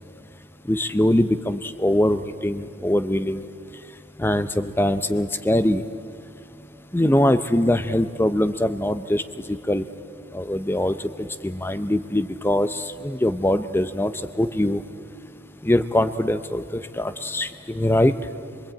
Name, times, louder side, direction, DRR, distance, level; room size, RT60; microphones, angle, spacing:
voice 1, 0.7-3.4 4.2-5.8 6.9-9.2 9.7-9.8 10.3-11.0 11.4-14.1 14.4-14.8 15.6-18.1, left 1 dB, 10° left, 11 dB, 0.6 m, -22 dB
27.0 x 21.0 x 8.9 m, 2.8 s
head